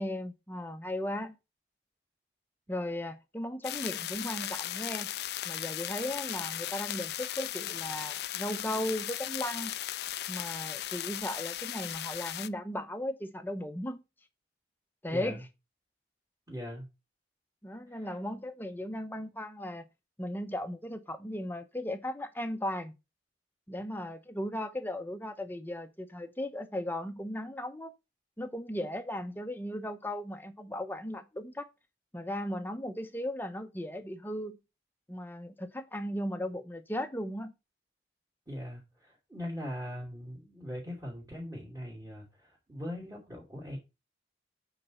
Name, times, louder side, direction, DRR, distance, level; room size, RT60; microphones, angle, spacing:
voice 1, 0.0-1.4 2.7-5.1 5.4-9.8 10.3-14.0 15.0-15.4 17.6-19.9 20.2-22.9 23.7-27.9 28.4-31.7 32.1-34.6 35.1-37.5, left 1 dB, 10° left, 0.8 m, -36 dB
sound 1, 3.6-12.5, left 12 dB, 60° left, 0.4 m, -37 dB
voice 2, 15.1-15.4 16.5-16.9 17.9-18.2 38.5-43.8, equal, 20° right, 2.7 m, -41 dB
8.5 x 4.1 x 5.8 m
head